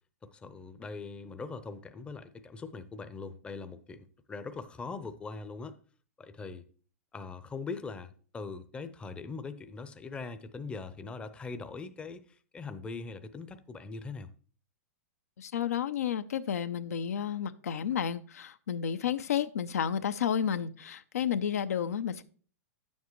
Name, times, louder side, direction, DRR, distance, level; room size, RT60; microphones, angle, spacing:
voice 1, 0.2-5.8 6.2-6.6 7.1-14.3, left 4 dB, 15° left, 0.5 m, -41 dB
voice 2, 15.4-22.2, left 8 dB, 85° left, 0.5 m, -31 dB
9.0 x 7.3 x 3.0 m
hypercardioid pair, 125°, 8 cm